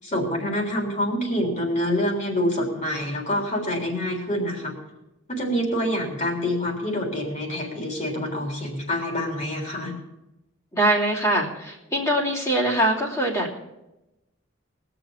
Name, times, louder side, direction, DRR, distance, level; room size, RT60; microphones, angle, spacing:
voice 1, 0.0-4.8 5.3-9.9, equal, 35° left, 1 dB, 3.6 m, -26 dB
voice 2, 10.7-13.6, right 1 dB, 15° left, -4 dB, 2.7 m, -23 dB
20.5 x 7.0 x 7.1 m, 0.94 s
head